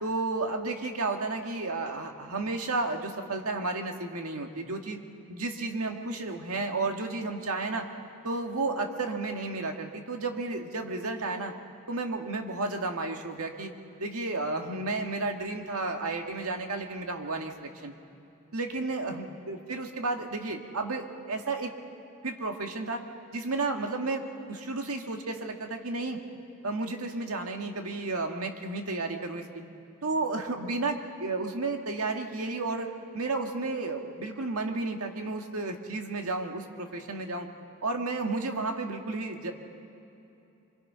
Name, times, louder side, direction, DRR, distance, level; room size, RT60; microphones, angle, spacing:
voice 1, 0.0-5.0 5.3-7.9 8.2-11.5 11.9-13.7 14.0-17.9 18.5-21.7 22.2-23.0 23.3-26.2 26.6-29.6 30.0-37.5 37.8-39.5, right 3 dB, 85° right, 3 dB, 1.9 m, -32 dB
25.0 x 23.0 x 5.7 m, 2.8 s
head